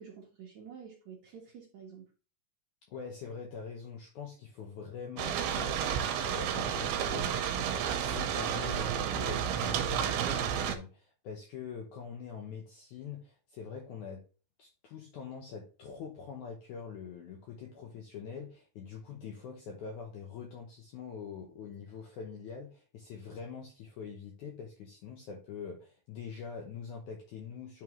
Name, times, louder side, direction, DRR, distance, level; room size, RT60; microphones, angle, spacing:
voice 1, 0.0-2.1, right 7 dB, 70° right, 1.8 m, -49 dB
voice 2, 2.9-14.2 14.6-27.8, left 6 dB, 75° left, 1.8 m, -44 dB
sound 1, 5.2-10.8, right 8 dB, 90° right, 2.7 m, -31 dB
11.0 x 3.7 x 3.0 m
omnidirectional pair, 4.5 m